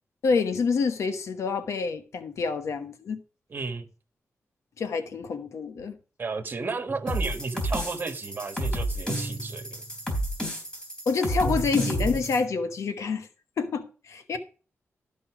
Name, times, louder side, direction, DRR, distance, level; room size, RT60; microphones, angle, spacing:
voice 1, 0.2-3.2 4.8-6.0 11.1-13.3 13.6-14.4, left 5 dB, 85° left, 1.0 m, -27 dB
voice 2, 3.5-3.9 6.2-9.8, right 4 dB, 40° right, 1.5 m, -33 dB
sound 1, 6.9-7.5 9.1-10.1 11.4-12.8, right 2 dB, 10° right, 2.3 m, -35 dB
sound 2, 7.1-12.4, right 1 dB, 15° left, 3.7 m, -31 dB
13.0 x 5.5 x 4.8 m
wide cardioid pair, 145°, 5 cm